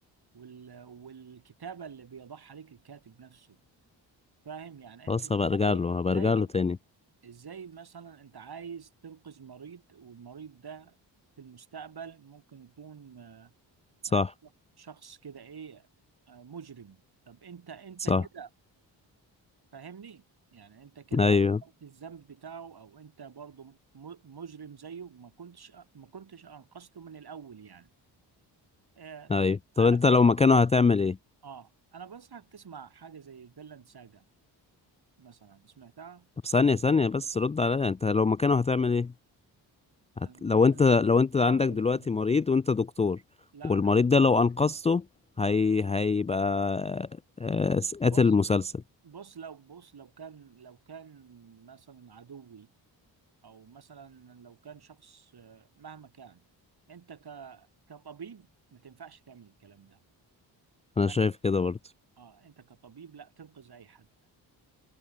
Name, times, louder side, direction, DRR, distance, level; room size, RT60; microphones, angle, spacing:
voice 1, 0.3-3.6 4.4-6.5 7.2-10.9 11.4-13.5 14.1-14.5 14.8-15.9 16.3-17.0 17.3-18.5 19.7-20.2 20.5-21.4 21.6-27.9 28.9-29.3 29.8-30.2 31.4-34.2 35.2-36.3 40.2-41.0 41.5-42.3 43.5-44.1 48.1-48.3 49.0-52.7 53.4-56.4 56.9-60.0 61.0-61.3 62.2-64.3, right 6 dB, 50° right, 3.3 m, -47 dB
voice 2, 5.1-6.8 14.1-14.3 18.1-18.2 21.1-21.6 29.3-31.2 36.4-39.1 40.2-43.2 43.6-45.0 45.4-47.1 47.4-48.8 61.0-61.8, left 4 dB, 15° left, 0.3 m, -24 dB
supercardioid pair, 45°, 48 cm